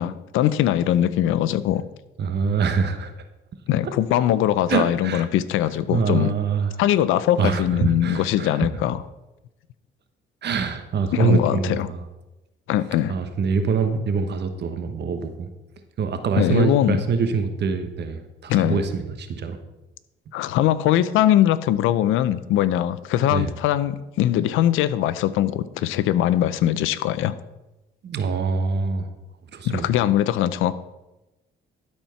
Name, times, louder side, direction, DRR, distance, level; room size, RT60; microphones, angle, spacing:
voice 1, 0.0-1.8 3.7-6.3 6.8-9.0 11.1-11.9 12.7-13.1 16.4-17.0 18.5-18.8 20.3-27.3 29.6-30.7, left 12 dB, 90° left, 15 dB, 0.5 m, -21 dB
voice 2, 2.2-3.1 4.7-5.3 5.9-6.7 7.4-8.7 10.4-12.0 13.1-15.5 16.0-19.6 23.3-23.5 28.0-29.1 29.5-29.9, right 5 dB, 60° right, 8 dB, 1.1 m, -24 dB
12.0 x 4.4 x 5.7 m, 1.0 s
cardioid pair, 90°, 20 cm